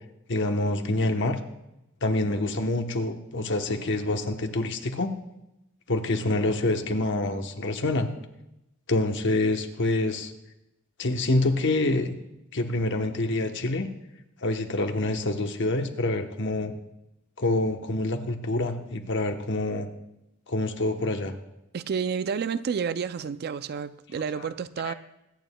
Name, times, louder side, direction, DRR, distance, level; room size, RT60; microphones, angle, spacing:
voice 1, 0.3-1.4 2.0-5.1 5.9-8.1 8.9-10.3 11.0-12.1 12.5-13.9 14.4-16.7 17.4-19.9 20.5-21.3 24.8-24.9, left 2 dB, 60° left, 1.0 m, -26 dB
voice 2, 21.7-24.9, right 6 dB, 50° right, 0.4 m, -30 dB
22.5 x 9.1 x 2.3 m
head